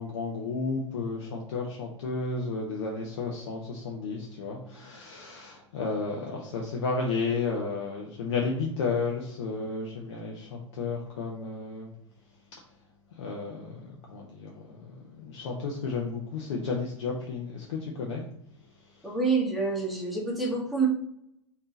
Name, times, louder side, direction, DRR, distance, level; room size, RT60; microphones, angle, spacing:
voice 1, 0.0-11.9 13.2-18.2, left 4 dB, 60° left, 0 dB, 0.6 m, -32 dB
voice 2, 19.0-20.9, right 4 dB, ahead, -3 dB, 1.1 m, -27 dB
3.6 x 2.7 x 3.7 m, 0.76 s
figure-of-eight pair, 90°, 16 cm